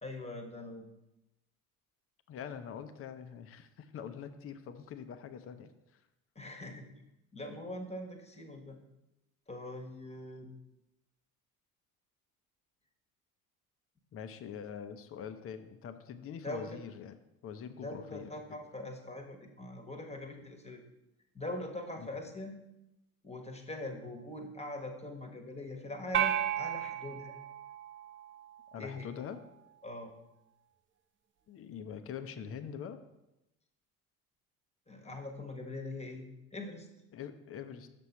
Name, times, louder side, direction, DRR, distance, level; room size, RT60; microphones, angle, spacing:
voice 1, 0.0-0.9 6.3-6.9 7.3-8.8 9.5-10.5 16.4-16.8 17.8-20.8 21.3-22.6 23.2-27.3 28.8-29.1 29.8-30.1 34.9-36.9, left 1 dB, 15° left, 4 dB, 1.3 m, -42 dB
voice 2, 2.3-6.0 14.1-17.2 17.4-18.3 22.0-22.1 28.7-29.4 31.5-33.0 37.1-37.9, left 7 dB, 30° left, 10 dB, 0.7 m, -44 dB
sound 1, 26.1-28.6, right 10 dB, 30° right, 0.6 m, -34 dB
6.8 x 6.0 x 4.3 m, 0.92 s
figure-of-eight pair, 60°, 43 cm